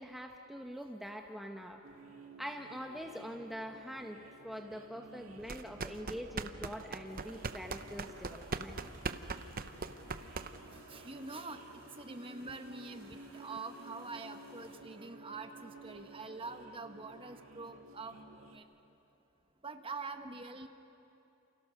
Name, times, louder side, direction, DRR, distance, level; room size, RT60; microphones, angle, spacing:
voice 1, 0.0-1.8 2.4-8.8, equal, ahead, 3 dB, 0.9 m, -44 dB
sound 1, 1.8-18.6, right 2 dB, 75° right, 2.2 m, -54 dB
sound 2, 5.4-10.8, right 4 dB, 45° right, 0.8 m, -40 dB
sound 3, 7.0-14.7, left 4 dB, 50° left, 7.4 m, -60 dB
voice 2, 10.7-18.6 19.6-20.7, right 3 dB, 25° right, 7 dB, 1.3 m, -45 dB
29.0 x 28.5 x 6.4 m, 2.9 s
head